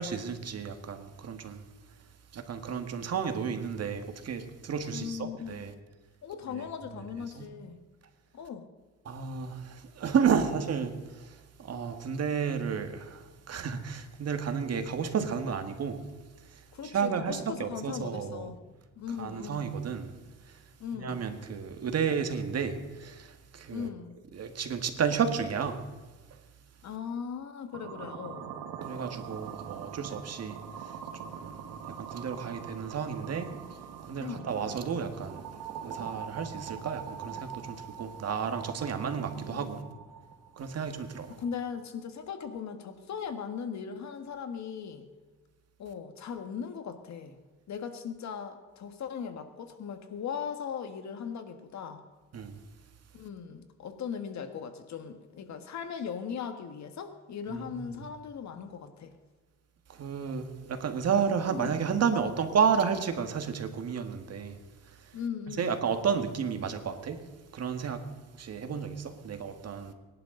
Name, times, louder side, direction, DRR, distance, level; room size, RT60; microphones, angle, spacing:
voice 1, 0.0-1.6 2.3-5.7 6.5-6.6 7.4-7.5 9.1-16.1 16.4-18.5 19.2-20.1 20.4-20.6 20.9-23.9 24.3-25.9 28.8-33.6 34.0-35.4 35.8-39.8 40.6-41.3 52.3-52.6 57.5-57.9 59.9-64.6 64.9-65.1 65.5-67.3 67.5-69.9, right 6 dB, 55° right, 1.8 m, -32 dB
voice 2, 4.9-5.7 6.2-7.8 8.3-8.7 16.7-18.6 19.0-19.8 20.8-21.2 23.7-24.2 26.8-28.5 34.2-34.5 39.4-39.8 41.3-45.1 45.8-47.4 47.7-52.0 53.1-59.1 61.5-61.8 65.1-65.7, left 7 dB, 65° left, 1.8 m, -38 dB
sound 1, 27.7-41.7, right 8 dB, 80° right, 1.7 m, -43 dB
24.0 x 11.0 x 3.9 m
cardioid pair, 90°, 30 cm